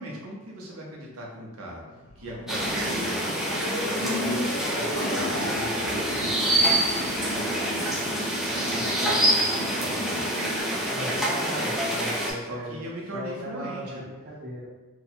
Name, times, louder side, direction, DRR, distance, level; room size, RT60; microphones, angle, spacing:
voice 1, 0.0-1.8 2.2-3.3 3.8-8.1 8.5-10.3 10.7-11.8 12.4-14.0, right 1 dB, 85° right, -3 dB, 0.7 m, -39 dB
sound 1, 1.9-7.3, left 2 dB, 85° left, 0.5 m, -34 dB
sound 2, 2.5-12.3, right 1 dB, ahead, 0.5 m, -26 dB
sound 3, 5.1-10.6, right 1 dB, 30° left, 1.0 m, -38 dB
voice 2, 10.9-12.8 13.1-14.7, equal, 40° right, -5 dB, 0.8 m, -36 dB
2.8 x 2.3 x 4.1 m, 1.2 s
head